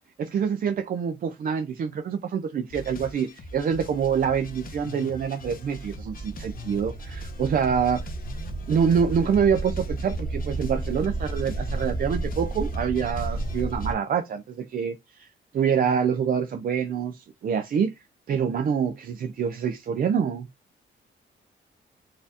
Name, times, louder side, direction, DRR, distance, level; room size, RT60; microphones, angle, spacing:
voice 1, 0.2-8.1 8.7-18.0 18.3-20.5, right 7 dB, 45° right, 0.4 m, -26 dB
Boss Battle, 2.7-13.9, equal, 45° left, 0.7 m, -41 dB
sound 1, 5.8-13.9, right 2 dB, 25° right, 0.9 m, -32 dB
4.1 x 2.5 x 2.7 m
wide cardioid pair, 160°, 21 cm